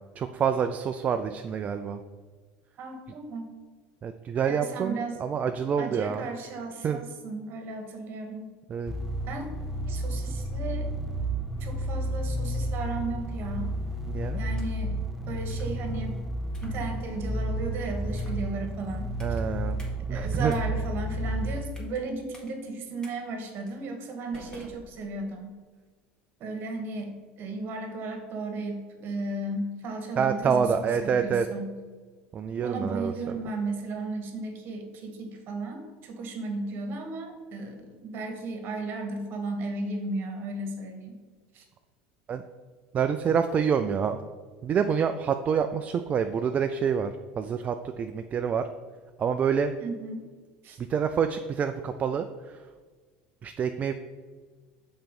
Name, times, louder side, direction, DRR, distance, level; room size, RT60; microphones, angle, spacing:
voice 1, 0.2-2.0 4.0-6.2 6.8-7.0 8.7-8.9 14.1-14.4 19.2-19.8 20.1-20.5 30.2-31.5 32.3-33.4 42.3-42.4 42.9-44.2 44.6-48.7 49.2-49.7 50.8-52.6 53.4-53.9, right 7 dB, 35° right, 7 dB, 0.4 m, -27 dB
voice 2, 2.8-3.5 4.5-5.2 5.8-8.5 9.3-9.5 9.9-10.9 11.6-13.7 14.4-15.0 15.3-16.2 16.6-19.2 20.1-25.6 26.4-31.7 32.6-41.2 41.5-41.6 49.8-50.2 50.6-50.8, right 2 dB, 50° right, 4 dB, 1.5 m, -35 dB
sound 1, 8.9-21.6, right 1 dB, 5° right, 0.7 m, -31 dB
sound 2, 14.3-14.9 15.5-15.8 16.5-16.8 17.3-17.6 18.1-18.5 19.2-19.4 19.8-19.9 20.3-22.0 22.3-22.5 23.0-23.1 23.7-23.8 24.3-25.4, left 1 dB, 15° left, 1.7 m, -51 dB
5.8 x 4.4 x 5.3 m, 1.5 s
supercardioid pair, 100°, 5 cm